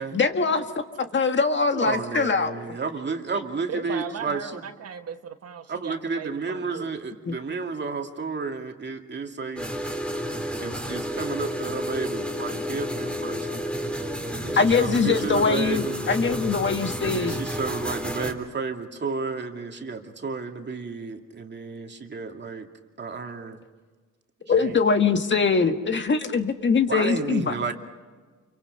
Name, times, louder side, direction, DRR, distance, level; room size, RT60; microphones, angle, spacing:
voice 1, 0.0-2.5 7.3-7.4 14.6-17.4 24.5-27.5, left 5 dB, 40° left, 6 dB, 1.8 m, -23 dB
voice 2, 1.7-4.5 5.7-9.7 10.6-13.6 14.3-16.0 17.0-22.7 23.0-23.6 24.5-24.8 26.9-27.7, right 4 dB, 35° right, 4 dB, 2.5 m, -32 dB
voice 3, 3.7-6.9, right 7 dB, 55° right, 7 dB, 1.3 m, -37 dB
sound 1, 9.6-18.3, equal, 5° left, 3.3 m, -31 dB
29.0 x 24.0 x 5.5 m, 1.4 s
cardioid pair, 90°, 30 cm